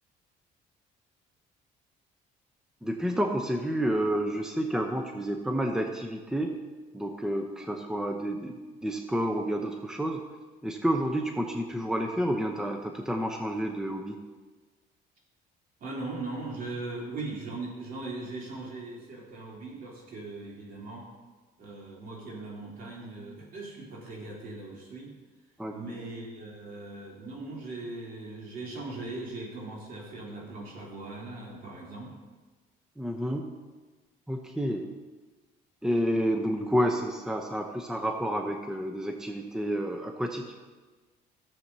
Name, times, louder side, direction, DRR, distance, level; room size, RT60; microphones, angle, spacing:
voice 1, 2.8-6.5 6.9-10.2 10.6-14.2 25.6-25.8 33.0-33.5 34.3-34.9 35.8-40.4, equal, 5° right, 3 dB, 0.7 m, -30 dB
voice 2, 15.8-21.1 21.6-25.1 25.7-32.1, right 2 dB, 60° right, -4 dB, 3.2 m, -39 dB
14.5 x 7.3 x 2.8 m, 1.3 s
cardioid pair, 110°, 17 cm